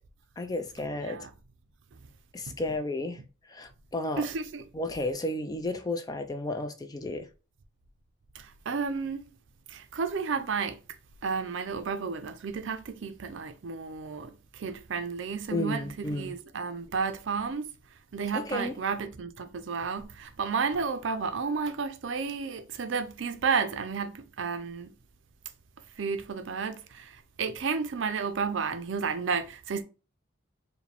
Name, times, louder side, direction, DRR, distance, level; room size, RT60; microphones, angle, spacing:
voice 1, 0.4-1.2 2.3-4.3 4.7-7.3 15.5-16.3 18.3-18.8, left 2 dB, 20° left, 0.3 m, -33 dB
voice 2, 4.2-4.6 8.3-9.3 9.7-10.8 11.2-17.7 18.1-24.9 26.0-29.8, right 5 dB, 70° right, 0.5 m, -32 dB
4.8 x 2.2 x 3.3 m
head